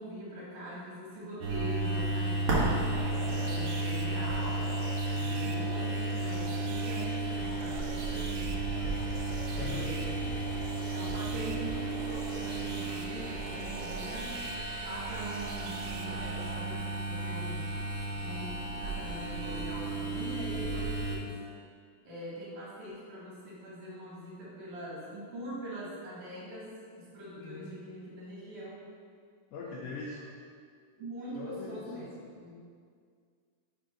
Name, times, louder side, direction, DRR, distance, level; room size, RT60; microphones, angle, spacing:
voice 1, 0.0-4.7 5.2-9.0 9.5-10.4 10.9-14.4 14.8-17.7 18.2-21.4 22.0-28.8 30.1-30.2 31.0-32.6, equal, 50° right, -7 dB, 2.2 m, -43 dB
sound 1, 1.4-21.2, right 2 dB, 65° right, 1.4 m, -33 dB
sound 2, 2.9-16.5, right 4 dB, 80° right, 2.3 m, -45 dB
voice 2, 5.1-5.6 9.6-9.9 27.4-27.7 29.5-30.2 31.3-32.1, left 4 dB, 85° left, -4 dB, 1.7 m, -41 dB
5.3 x 5.0 x 5.0 m, 2.1 s
omnidirectional pair, 4.2 m